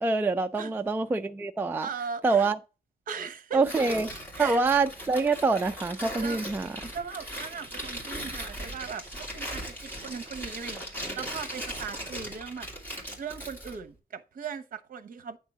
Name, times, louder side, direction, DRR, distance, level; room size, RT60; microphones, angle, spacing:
voice 1, 0.0-1.9 2.2-2.6 3.5-4.1 4.4-6.7, right 3 dB, 10° right, 0.3 m, -25 dB
voice 2, 1.8-2.5 3.1-3.7 4.3-4.7 6.2-6.4 6.7-12.7 13.2-15.4, right 6 dB, 55° right, 1.0 m, -39 dB
Tearing, 3.6-13.8, equal, 10° left, 2.6 m, -38 dB
9.0 x 3.7 x 6.0 m
wide cardioid pair, 165°, 17 cm